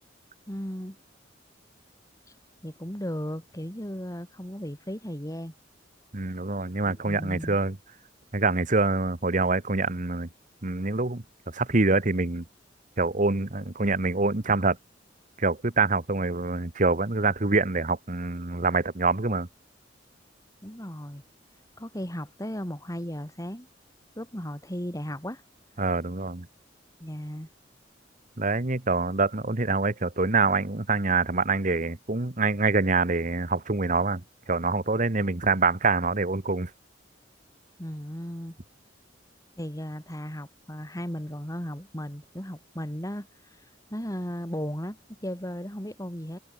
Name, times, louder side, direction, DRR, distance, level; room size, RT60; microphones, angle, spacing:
voice 1, 0.5-1.0 2.6-5.5 6.8-7.6 20.6-21.2 21.8-23.7 24.2-25.4 27.0-27.5 37.8-38.6 39.6-43.3 43.9-46.4, equal, 20° left, 6.2 m, -35 dB
voice 2, 6.1-7.8 8.3-10.3 10.6-11.2 11.5-12.4 13.0-14.8 15.4-19.5 25.8-26.5 28.4-34.2 34.5-36.7, right 3 dB, 45° right, 1.4 m, -25 dB
head